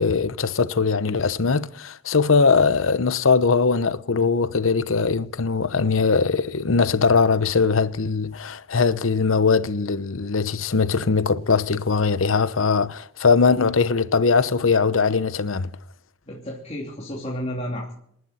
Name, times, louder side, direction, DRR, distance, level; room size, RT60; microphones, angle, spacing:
voice 1, 0.0-15.7, left 4 dB, 80° left, 0.8 m, -21 dB
voice 2, 16.3-17.9, equal, 35° left, 2.8 m, -31 dB
27.5 x 11.5 x 4.3 m
head